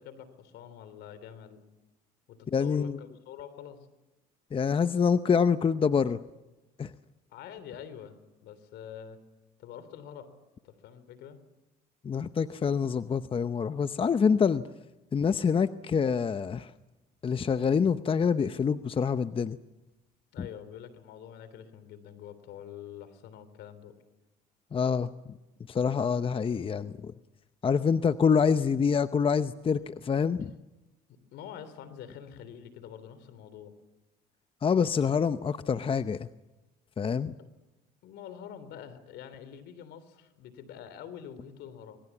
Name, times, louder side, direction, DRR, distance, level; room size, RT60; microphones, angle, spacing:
voice 1, 0.0-1.6 2.3-3.9 7.3-9.2 9.6-10.3 10.6-11.4 20.3-24.0 30.2-30.5 31.1-33.7 37.4-37.5 38.0-42.0, left 9 dB, 70° left, 14 dB, 3.4 m, -46 dB
voice 2, 2.5-3.0 4.5-6.2 6.8-6.9 12.0-14.6 15.1-16.7 17.2-19.6 20.4-20.5 24.7-25.1 25.7-27.1 27.6-30.5 34.6-36.3 37.0-37.3, left 6 dB, 30° left, 12 dB, 0.8 m, -26 dB
25.5 x 22.0 x 7.2 m, 1.0 s
supercardioid pair, 85°, 18 cm